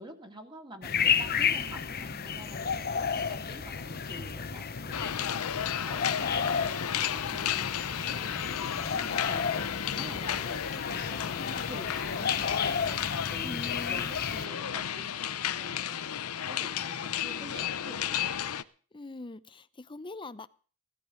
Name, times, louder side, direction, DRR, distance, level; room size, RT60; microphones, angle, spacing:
voice 1, 0.0-7.7 8.1-9.6 9.9-16.0 16.5-18.2, equal, 20° right, 2.4 m, -48 dB
sound 1, 0.8-14.5, left 6 dB, 45° left, 0.9 m, -32 dB
sound 2, 4.9-18.6, left 9 dB, 80° left, 0.7 m, -33 dB
voice 2, 13.4-14.1 18.9-20.5, left 2 dB, 20° left, 0.6 m, -42 dB
17.0 x 13.5 x 5.0 m
head